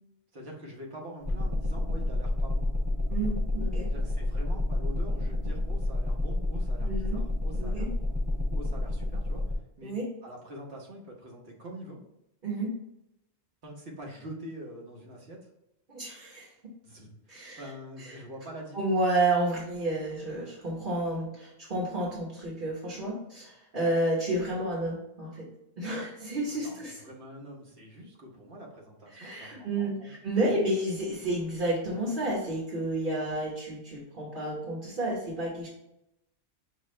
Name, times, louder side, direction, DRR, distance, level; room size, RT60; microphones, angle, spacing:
voice 1, 0.3-2.7 3.9-10.0 10.2-12.0 13.6-15.5 16.8-18.8 26.2-30.1 30.4-30.5, equal, 65° right, -1 dB, 1.4 m, -45 dB
sound 1, 1.2-9.5, left 1 dB, 25° right, 0.5 m, -29 dB
voice 2, 3.1-3.9 6.8-7.2 7.6-7.9 9.8-10.0 12.4-12.7 15.9-16.5 17.3-17.6 18.0-18.2 18.7-25.5 25.8-27.0 29.1-35.7, right 1 dB, 50° right, -5 dB, 1.3 m, -30 dB
6.0 x 2.4 x 3.2 m, 0.85 s
omnidirectional pair, 1.2 m